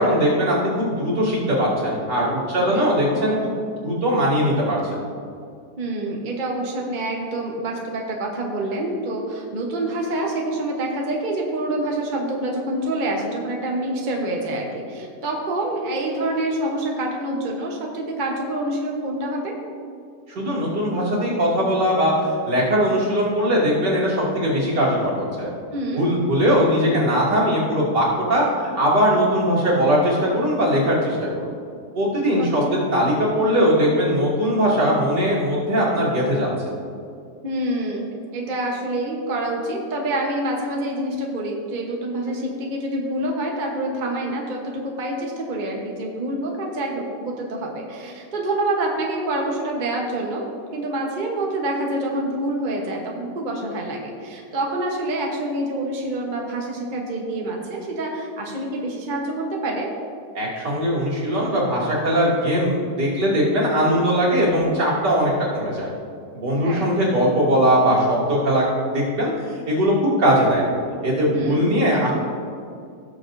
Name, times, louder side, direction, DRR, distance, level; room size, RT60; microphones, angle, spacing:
voice 1, 0.0-3.5 3.8-5.0 20.3-25.5 25.9-31.5 31.9-36.5 60.3-65.9 66.3-68.6 68.9-70.6 71.0-72.1, equal, 70° right, -6 dB, 3.2 m, -20 dB
voice 2, 5.8-19.6 25.7-26.1 32.4-32.9 37.4-50.5 50.7-59.9 66.5-66.8 71.3-71.7, right 1 dB, 30° right, -1 dB, 1.1 m, -27 dB
17.5 x 6.8 x 2.7 m, 2.3 s
omnidirectional pair, 1.9 m